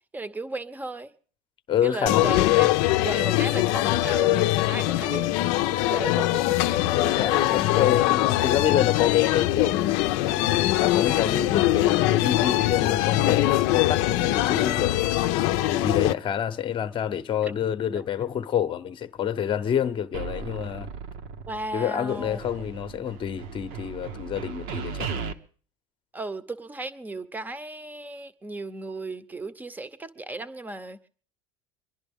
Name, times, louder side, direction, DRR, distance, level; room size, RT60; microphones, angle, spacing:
voice 1, 0.1-1.1 1.8-2.4 2.8-5.4 5.8-6.9 17.4-17.6 17.9-18.0 21.5-22.4 26.1-31.0, right 2 dB, 10° right, 0.8 m, -35 dB
voice 2, 1.7-2.7 6.9-10.0 10.2-15.1 15.7-20.9 21.7-25.2, left 9 dB, 30° left, 0.8 m, -27 dB
sound 1, 2.1-16.1, left 16 dB, 70° left, 0.5 m, -22 dB
sound 2, 20.1-21.8 22.1-25.3, right 5 dB, 70° right, 1.0 m, -36 dB
24.5 x 11.0 x 3.6 m
supercardioid pair, 125°, 16 cm